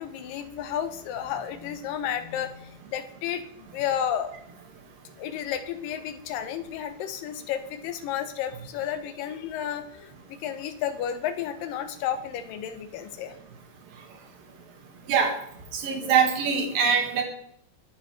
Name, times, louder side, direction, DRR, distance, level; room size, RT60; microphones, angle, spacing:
voice 1, 0.0-4.3 5.2-13.4, left 9 dB, 75° left, 9 dB, 2.5 m, -32 dB
voice 2, 15.7-17.2, right 6 dB, 75° right, 2 dB, 3.5 m, -23 dB
21.0 x 9.0 x 3.3 m, 0.68 s
omnidirectional pair, 4.1 m